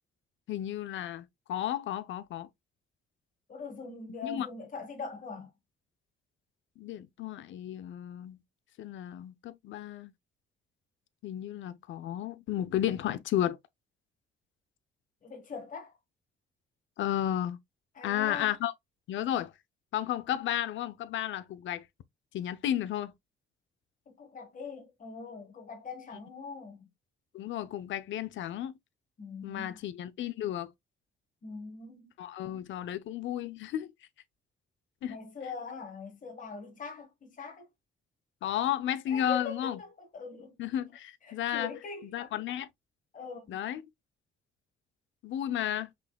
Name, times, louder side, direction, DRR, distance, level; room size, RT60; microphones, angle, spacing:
voice 1, 0.5-2.5 4.2-4.5 6.8-8.4 8.8-10.1 11.2-13.6 17.0-17.6 18.0-18.7 19.1-19.5 19.9-21.9 22.3-23.1 27.3-28.8 29.4-30.7 32.2-33.9 35.0-35.2 38.4-39.8 40.6-41.7 42.0-42.7 43.5-43.8 45.2-45.9, left 11 dB, 70° left, 0.7 m, -33 dB
voice 2, 3.5-5.5 15.2-16.0 17.9-18.5 24.1-26.9 29.2-29.8 31.4-32.1 35.1-37.7 39.1-40.5 41.2-42.1 43.1-43.6, left 4 dB, 40° left, 1.3 m, -42 dB
5.5 x 3.9 x 2.3 m
cardioid pair, 90°, 20 cm